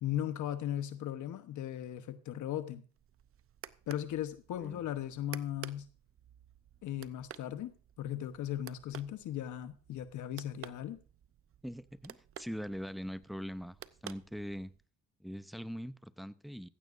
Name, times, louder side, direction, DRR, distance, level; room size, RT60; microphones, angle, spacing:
voice 1, 0.0-2.8 3.9-5.9 6.8-7.7 8.0-11.0, left 11 dB, 75° left, 1.1 m, -37 dB
sound 1, 2.9-14.9, right 10 dB, 45° right, 0.7 m, -53 dB
voice 2, 11.6-13.8 14.0-14.7 15.2-16.7, equal, ahead, 0.6 m, -42 dB
15.5 x 14.5 x 2.6 m
cardioid pair, 90°, 30 cm